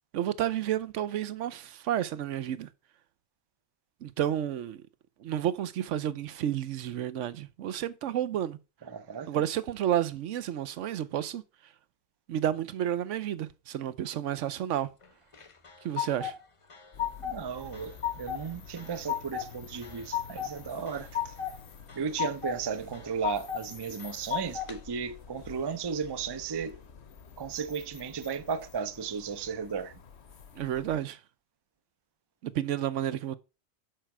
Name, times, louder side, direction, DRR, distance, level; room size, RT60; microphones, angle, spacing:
voice 1, 0.1-2.7 4.0-4.8 5.2-8.6 9.3-11.4 12.3-14.9 15.8-16.3 30.6-31.2 32.4-33.3, right 11 dB, 75° right, 1.0 m, -31 dB
voice 2, 8.9-9.3 17.2-21.4 21.9-26.8 27.4-30.0, right 6 dB, 35° right, 0.4 m, -35 dB
sound 1, 15.3-16.3 16.7-17.4 17.7-18.4 18.8-19.5 19.8-20.5 20.9-21.5 21.9-22.6 22.9-23.6 24.0-24.8, left 10 dB, 30° left, 0.7 m, -33 dB
sound 2, 16.9-31.0, left 6 dB, 65° left, 1.2 m, -50 dB
6.6 x 4.5 x 5.9 m
omnidirectional pair, 1.3 m